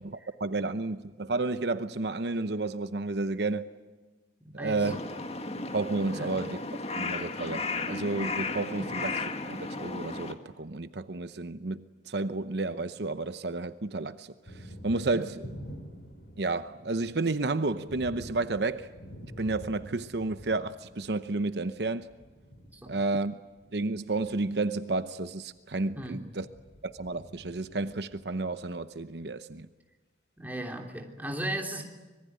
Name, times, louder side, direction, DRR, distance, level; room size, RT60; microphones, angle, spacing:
voice 1, 0.0-3.7 4.5-5.0 5.7-6.6 6.9-15.5 16.4-18.9 19.4-22.1 22.9-23.4 23.7-26.5 26.8-29.7, right 3 dB, 70° right, 0.9 m, -31 dB
voice 2, 4.4-4.8 6.1-6.3 8.8-8.9 15.1-15.2 22.7-22.9 25.9-26.2 30.4-31.8, right 1 dB, 10° right, 3.2 m, -36 dB
Crow, 4.8-10.3, left 3 dB, 35° left, 1.9 m, -34 dB
Thunder, 12.4-13.4 13.7-28.9, equal, 75° left, 5.3 m, -48 dB
25.5 x 22.5 x 9.4 m
head